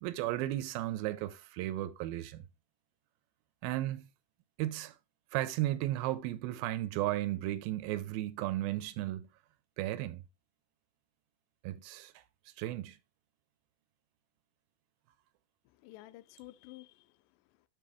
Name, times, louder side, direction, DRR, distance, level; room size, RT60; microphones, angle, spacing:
voice 1, 0.0-2.4 3.6-4.1 4.6-5.0 5.3-9.3 9.8-10.2 11.6-12.1 12.6-13.0, right 15 dB, 85° right, 2.4 m, -34 dB
voice 2, 15.7-17.7, left 17 dB, 80° left, 1.9 m, -53 dB
7.6 x 6.1 x 3.5 m
omnidirectional pair, 4.3 m